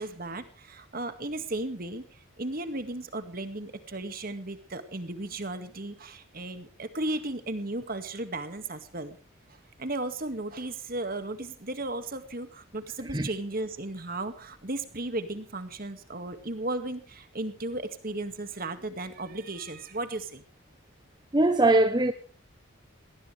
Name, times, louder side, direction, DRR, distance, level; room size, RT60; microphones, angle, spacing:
voice 1, 0.0-9.2 9.5-20.4, right 2 dB, 45° right, 2.0 m, -35 dB
voice 2, 21.3-22.1, right 2 dB, 20° right, 0.9 m, -21 dB
20.5 x 18.5 x 3.4 m
head